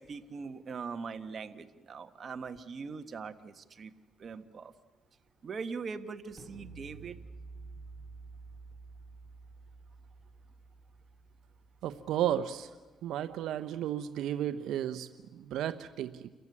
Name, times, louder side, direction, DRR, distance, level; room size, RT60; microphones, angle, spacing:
voice 1, 0.0-3.9 4.2-4.7 5.4-7.2, right 5 dB, 45° right, 8 dB, 1.5 m, -41 dB
sound 1, 6.4-12.3, right 4 dB, 20° right, 4.1 m, -50 dB
voice 2, 11.8-12.7 13.0-16.3, right 11 dB, 85° right, 10 dB, 0.8 m, -33 dB
29.0 x 15.0 x 9.7 m, 1.3 s
cardioid pair, 90°, 0 cm